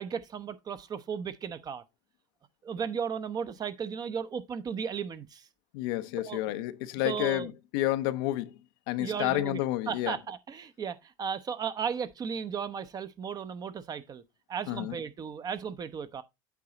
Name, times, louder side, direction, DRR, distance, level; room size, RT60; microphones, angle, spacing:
voice 1, 0.0-1.8 2.6-5.4 6.2-6.5 7.0-7.5 9.0-9.6 9.9-14.2 14.5-16.2, right 7 dB, 35° right, 0.8 m, -35 dB
voice 2, 5.7-8.5 8.9-10.2 14.7-15.0, left 15 dB, 80° left, 0.7 m, -30 dB
8.4 x 4.7 x 3.9 m
supercardioid pair, 105°, 11 cm